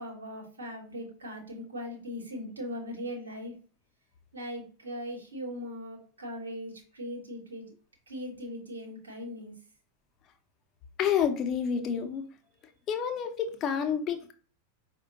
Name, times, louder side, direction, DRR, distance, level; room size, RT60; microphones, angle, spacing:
voice 1, 0.0-3.5 4.3-7.7 8.1-9.5, equal, 75° right, 1 dB, 1.0 m, -39 dB
voice 2, 11.0-12.2 12.9-14.3, left 8 dB, 30° left, 6 dB, 0.5 m, -29 dB
4.8 x 2.2 x 2.8 m, 0.40 s
figure-of-eight pair, 90°, 0 cm